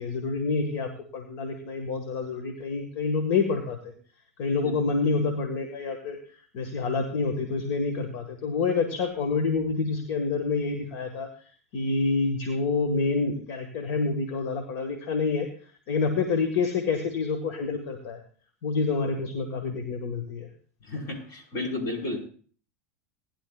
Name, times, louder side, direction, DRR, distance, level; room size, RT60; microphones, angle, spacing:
voice 1, 0.0-3.9 4.4-6.2 6.5-11.3 11.7-15.5 15.9-18.2 18.6-20.5, left 4 dB, 65° left, 5 dB, 1.8 m, -27 dB
voice 2, 20.8-22.3, left 2 dB, 45° left, 1 dB, 5.0 m, -32 dB
19.5 x 11.0 x 2.4 m, 0.42 s
hypercardioid pair, 100°, 8 cm